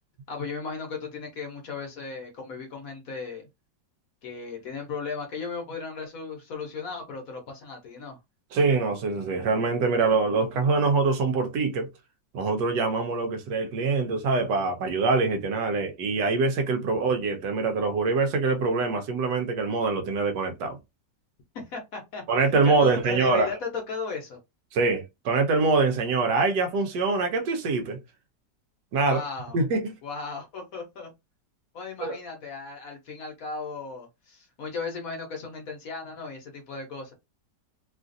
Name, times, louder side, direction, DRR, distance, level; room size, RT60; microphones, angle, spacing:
voice 1, 0.3-3.4 4.2-8.2 21.5-24.4 29.0-29.6 30.0-31.1 31.7-37.1, left 4 dB, 60° left, 1.1 m, -36 dB
voice 2, 8.5-11.9 12.3-20.8 22.3-23.5 24.7-28.0 28.9-29.2 29.5-29.9 32.0-32.2, right 4 dB, 75° right, 1.2 m, -24 dB
3.1 x 2.4 x 2.5 m
omnidirectional pair, 1.9 m